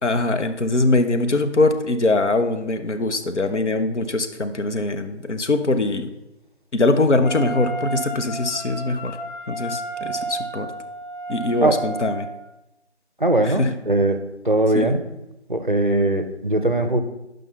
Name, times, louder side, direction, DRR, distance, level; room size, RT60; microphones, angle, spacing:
voice 1, 0.0-6.1 6.7-9.2 9.5-10.7 11.3-12.3 13.4-13.7 14.7-15.0, left 2 dB, 75° left, 8 dB, 0.8 m, -22 dB
Wind instrument woodwind instrument, 7.2-12.5, right 2 dB, 20° right, 1.4 m, -32 dB
voice 2, 13.2-14.2 14.4-15.0 15.5-17.0, right 1 dB, 45° right, 8 dB, 0.6 m, -20 dB
5.7 x 5.3 x 5.4 m, 0.92 s
figure-of-eight pair, 175°, 35 cm